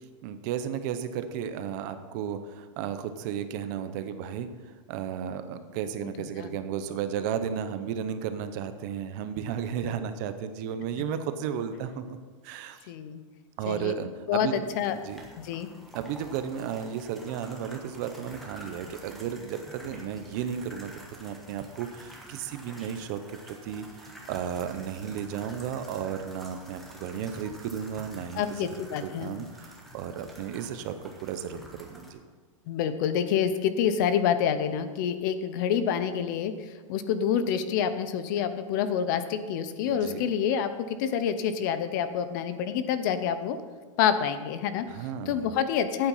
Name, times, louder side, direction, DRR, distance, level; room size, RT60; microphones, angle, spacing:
voice 1, 0.2-4.5 4.9-12.2 12.4-12.9 13.6-14.7 15.0-15.2 15.9-23.2 23.5-28.7 29.0-32.2 39.9-40.2 44.9-45.5, right 8 dB, 35° right, 10 dB, 0.7 m, -34 dB
voice 2, 12.9-13.2 13.7-13.9 14.3-15.0 15.4-15.7 28.3-29.3 32.7-43.6 44.0-44.9 45.3-46.1, left 8 dB, 35° left, 11 dB, 0.6 m, -27 dB
sound 1, 14.6-32.1, right 1 dB, ahead, 1.2 m, -48 dB
12.5 x 8.9 x 5.5 m, 1.4 s
supercardioid pair, 175°, 17 cm